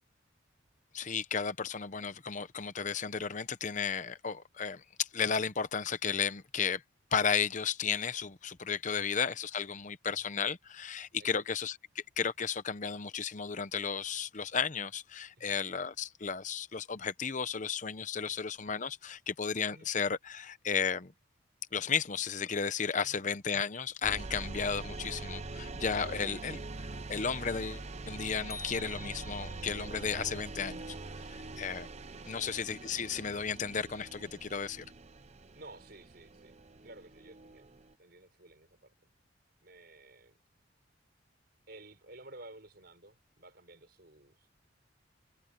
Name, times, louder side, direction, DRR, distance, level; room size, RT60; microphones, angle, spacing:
voice 1, 0.9-6.8 7.1-21.1 21.7-30.8 31.3-31.9 32.3-34.8, left 6 dB, 40° left, 0.7 m, -34 dB
sound 1, 24.0-37.9, right 3 dB, 35° right, 0.7 m, -44 dB
voice 2, 26.0-26.5 32.1-32.4 35.5-36.6 36.8-37.7 38.0-38.9 39.6-40.4 41.7-44.5, right 2 dB, 50° right, 5.3 m, -53 dB
sound 2, 28.5-29.9, left 4 dB, 15° left, 4.9 m, -47 dB
head